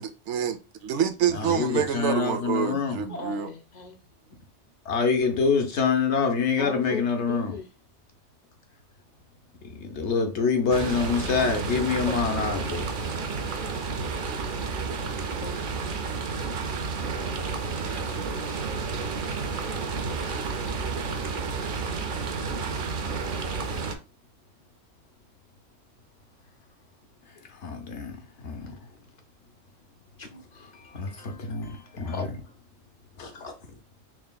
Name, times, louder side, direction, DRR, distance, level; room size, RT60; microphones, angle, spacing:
voice 1, 0.0-3.5, right 8 dB, 85° right, 0.9 m, -27 dB
voice 2, 1.3-3.0 4.8-7.5 9.6-12.9 27.5-28.2 28.4-28.7 30.9-32.2 33.2-33.5, left 5 dB, 80° left, 1.1 m, -26 dB
voice 3, 3.1-4.0 6.6-7.0 7.3-7.7 12.1-12.5 15.4-15.7 20.2-20.3 30.2-32.3, left 3 dB, 50° left, 0.5 m, -38 dB
sound 1, 10.7-24.0, right 4 dB, 55° right, 0.7 m, -31 dB
4.7 x 3.2 x 2.2 m
omnidirectional pair, 1.2 m